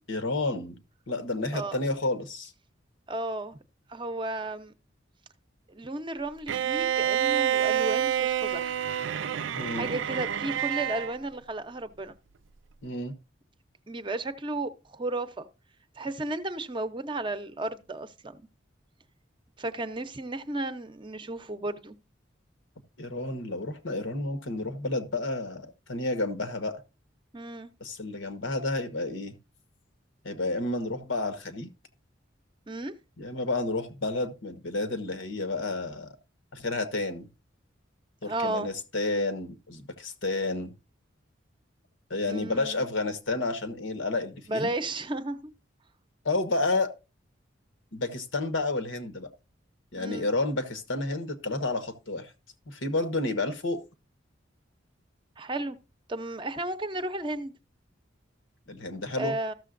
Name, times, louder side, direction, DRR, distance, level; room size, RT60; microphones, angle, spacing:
voice 1, 0.1-0.8 1.1-2.5 9.5-9.9 12.8-13.1 23.0-26.8 27.8-29.4 30.2-31.7 33.2-36.1 36.5-37.3 38.2-40.7 42.1-44.7 46.2-46.9 47.9-49.3 49.9-52.3 52.7-53.8 58.7-59.3, left 2 dB, 90° left, 1.2 m, -30 dB
voice 2, 3.1-3.6 3.9-4.7 5.7-8.8 9.7-12.1 13.9-15.5 16.0-18.4 19.6-22.0 27.3-27.7 32.7-32.9 38.2-38.7 42.3-42.8 44.5-45.5 49.9-50.3 55.4-55.8 56.1-57.5 59.2-59.5, right 2 dB, 25° right, 0.6 m, -33 dB
Bowed string instrument, 6.5-11.1, right 10 dB, 75° right, 0.4 m, -28 dB
14.0 x 6.7 x 2.5 m
head